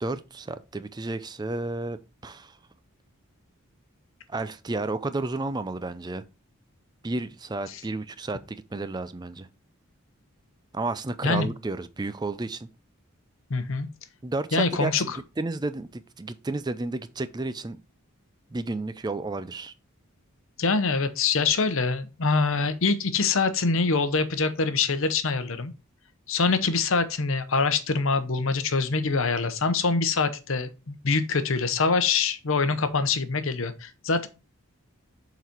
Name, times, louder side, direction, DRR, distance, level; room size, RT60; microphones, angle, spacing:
voice 1, 0.0-2.6 4.3-6.2 7.0-9.5 10.7-12.7 14.2-17.8 18.5-19.7, right 2 dB, 20° right, 0.4 m, -32 dB
voice 2, 13.5-13.9 14.5-15.2 20.6-25.7 26.3-34.3, left 4 dB, 60° left, 0.8 m, -24 dB
6.9 x 4.1 x 4.4 m
head